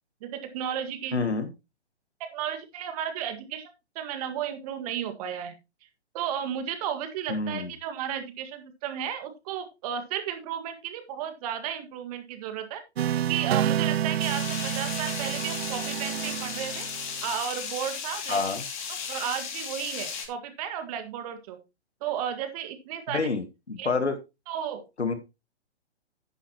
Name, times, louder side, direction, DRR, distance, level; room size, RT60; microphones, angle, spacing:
voice 1, 0.2-1.2 2.2-5.5 6.1-12.8 13.2-16.9 17.2-18.4 19.1-21.6 22.0-23.3 23.8-23.9 24.5-24.8, right 9 dB, 35° right, 8 dB, 1.8 m, -33 dB
voice 2, 1.1-1.5 7.3-7.7 18.3-18.7 23.1-24.2 25.0-25.1, left 4 dB, 85° left, 10 dB, 1.7 m, -28 dB
sound 1, 13.0-17.2, right 11 dB, 70° right, 0.5 m, -29 dB
sound 2, 14.2-20.3, left 6 dB, 45° left, 3.1 m, -35 dB
10.0 x 9.9 x 2.9 m, 0.25 s
figure-of-eight pair, 125°, 33 cm